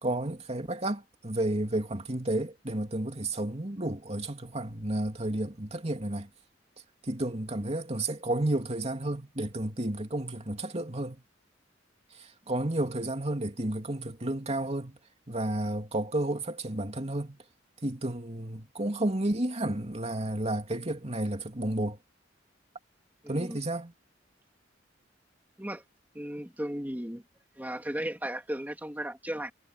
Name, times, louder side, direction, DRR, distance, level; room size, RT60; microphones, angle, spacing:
voice 1, 0.0-6.3 7.0-11.2 12.1-15.0 15.3-17.4 17.8-22.0 23.3-23.9, right 1 dB, 35° right, 2.7 m, -31 dB
voice 2, 23.2-23.6 25.6-25.8 26.1-27.2 27.6-29.5, right 1 dB, 10° right, 2.3 m, -35 dB
head